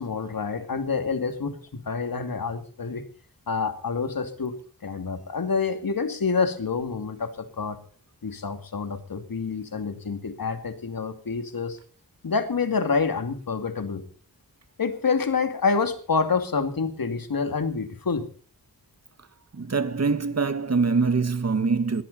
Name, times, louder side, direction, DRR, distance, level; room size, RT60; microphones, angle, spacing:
voice 1, 0.0-3.0 3.5-4.6 4.8-7.8 8.2-11.8 12.2-14.0 14.8-18.3, left 5 dB, 75° left, 2.6 m, -27 dB
voice 2, 19.5-22.0, right 4 dB, 45° right, 1.5 m, -24 dB
20.5 x 15.0 x 4.2 m
wide cardioid pair, 95°, 35 cm